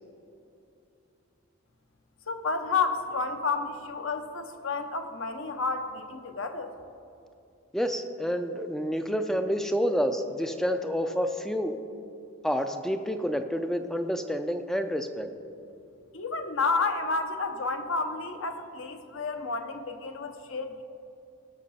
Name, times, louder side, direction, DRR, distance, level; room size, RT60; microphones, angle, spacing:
voice 1, 2.3-6.7 16.1-20.8, left 4 dB, 70° left, 6 dB, 0.9 m, -30 dB
voice 2, 7.7-11.7 12.4-15.3, equal, ahead, 7 dB, 0.4 m, -28 dB
17.5 x 6.6 x 4.2 m, 2.6 s
head